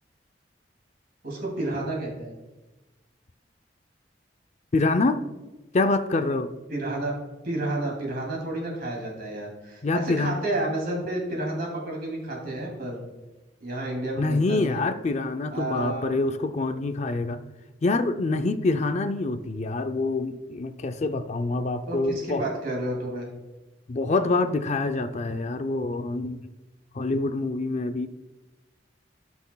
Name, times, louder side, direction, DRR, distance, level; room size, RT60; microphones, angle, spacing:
voice 1, 1.2-2.3 6.7-7.1 7.4-13.1 13.6-14.8 15.5-16.1 21.9-23.3, right 1 dB, 55° right, -1 dB, 2.6 m, -31 dB
voice 2, 4.7-5.2 5.7-6.5 9.8-10.4 14.2-17.4 17.8-22.4 23.9-26.4 26.9-28.1, left 3 dB, 40° left, 9 dB, 0.4 m, -26 dB
17.0 x 6.1 x 2.3 m, 1.1 s
head